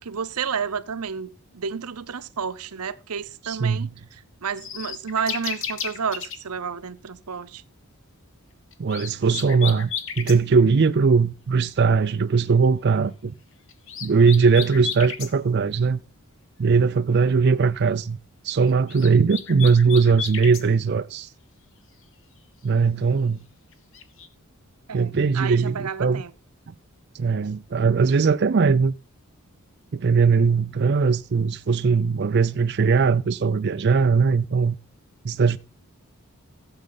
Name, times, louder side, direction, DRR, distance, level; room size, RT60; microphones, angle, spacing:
voice 1, 0.0-3.9 4.4-7.6 24.9-26.3, right 6 dB, 85° right, 0.8 m, -31 dB
voice 2, 3.4-3.9 8.8-9.9 10.2-13.3 14.0-16.0 16.6-18.2 18.4-21.3 22.6-23.4 24.9-26.2 26.7-26.8 27.1-28.9 29.9-34.8 35.2-35.6, right 5 dB, 50° right, 0.4 m, -20 dB
sound 1, 4.6-6.4 8.7-10.4 13.7-15.3 18.7-20.7 23.7-24.3, left 7 dB, 60° left, 1.3 m, -33 dB
15.5 x 7.7 x 3.9 m
head